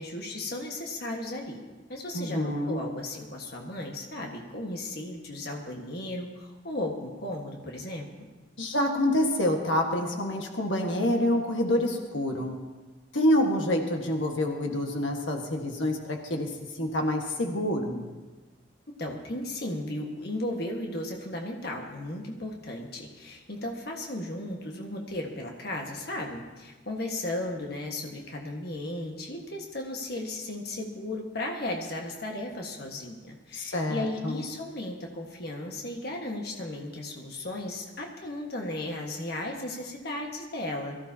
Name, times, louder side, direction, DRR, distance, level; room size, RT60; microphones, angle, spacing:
voice 1, 0.0-1.6 1.9-8.3 13.7-13.9 19.0-41.0, left 1 dB, 55° left, 0 dB, 1.6 m, -35 dB
voice 2, 2.1-2.8 8.6-12.6 13.1-18.1 33.5-34.4, left 1 dB, 80° left, 2 dB, 1.6 m, -27 dB
22.5 x 14.5 x 2.8 m, 1.3 s
head